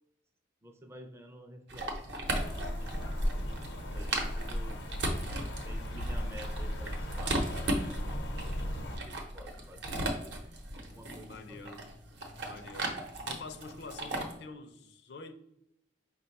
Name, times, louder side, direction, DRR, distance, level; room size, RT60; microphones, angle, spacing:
voice 1, 0.6-3.4 3.9-4.8 5.6-11.8, equal, 15° right, 0.4 m, -52 dB
sound 1, 1.7-14.4, right 1 dB, 70° right, 0.8 m, -37 dB
sound 2, 2.2-9.0, equal, 90° left, 0.8 m, -36 dB
voice 2, 11.3-11.8 12.4-13.0 13.2-15.3, left 3 dB, 65° left, 0.5 m, -46 dB
5.0 x 2.2 x 4.0 m
head